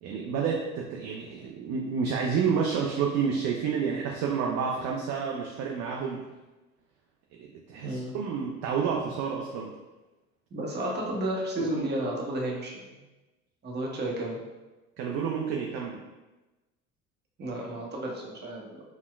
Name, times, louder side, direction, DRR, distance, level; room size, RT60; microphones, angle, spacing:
voice 1, 0.0-6.2 7.3-9.7 15.0-16.0, right 6 dB, 40° right, 0 dB, 0.4 m, -29 dB
voice 2, 7.8-8.1 10.5-13.0 13.6-14.4 17.4-18.8, right 1 dB, 25° right, -2 dB, 0.8 m, -32 dB
4.1 x 2.1 x 2.3 m, 1.1 s
hypercardioid pair, 70°, 41 cm